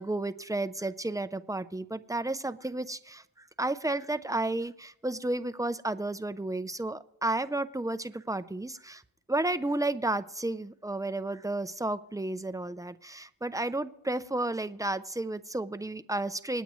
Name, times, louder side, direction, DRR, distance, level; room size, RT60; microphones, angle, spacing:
voice 1, 0.0-9.0 9.3-16.6, right 2 dB, 10° right, 12 dB, 0.5 m, -32 dB
27.5 x 9.3 x 3.1 m, 0.83 s
wide cardioid pair, 105°, 47 cm